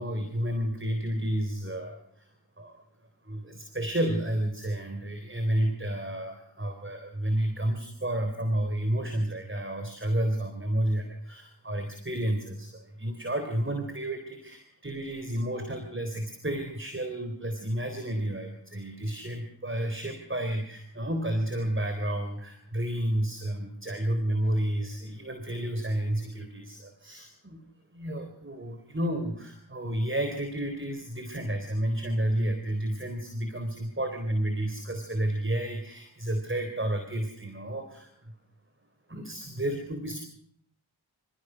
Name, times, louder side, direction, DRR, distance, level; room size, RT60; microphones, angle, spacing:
voice 1, 0.0-2.3 2.6-2.8 3.2-27.6 27.9-38.3 39.1-40.2, right 1 dB, 30° right, 6 dB, 3.9 m, -31 dB
26.5 x 16.0 x 6.4 m, 0.65 s
cardioid pair, 40°, 39 cm